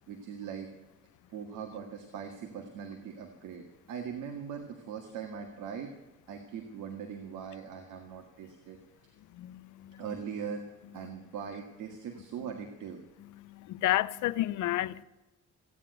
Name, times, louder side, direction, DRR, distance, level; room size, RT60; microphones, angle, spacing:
voice 1, 0.1-0.7 1.3-5.9 6.3-8.8 10.0-10.6 10.9-13.0, right 7 dB, 90° right, 1.9 m, -41 dB
voice 2, 9.3-10.0 13.4-15.0, left 15 dB, 80° left, 0.7 m, -31 dB
16.0 x 9.8 x 9.1 m
cardioid pair, 90°, 30 cm